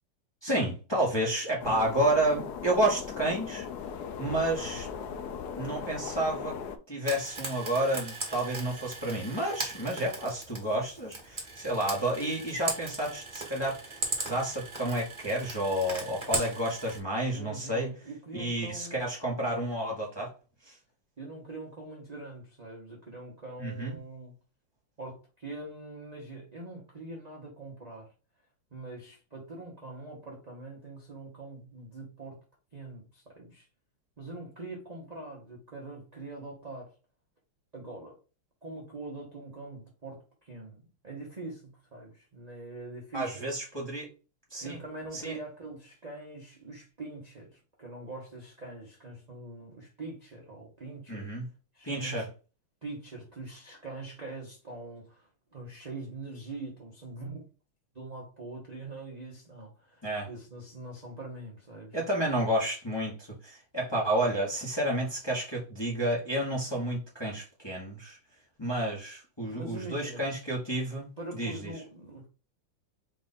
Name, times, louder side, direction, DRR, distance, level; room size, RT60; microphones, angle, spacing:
voice 1, 0.4-3.7 4.2-4.9 5.6-6.6 6.9-17.9 18.3-20.3 20.6-20.7 23.6-24.0 43.1-44.1 44.5-44.8 45.1-45.4 51.1-51.4 51.8-52.3 60.0-60.3 61.9-68.2 68.6-71.1 71.4-71.7, right 1 dB, 20° left, 0.8 m, -30 dB
sound 1, 1.6-6.8, left 7 dB, 90° left, 0.8 m, -38 dB
voice 2, 4.6-5.3 17.3-19.0 21.2-24.3 25.0-28.1 28.7-32.4 32.7-33.7 34.2-36.9 37.7-38.2 38.6-43.5 44.6-51.3 51.7-52.2 52.8-57.4 57.9-62.0 69.5-70.2 71.2-72.3, right 2 dB, 40° right, 0.5 m, -43 dB
Frying (food), 7.0-17.0, right 3 dB, 25° right, 1.3 m, -38 dB
4.6 x 2.5 x 4.0 m
omnidirectional pair, 2.4 m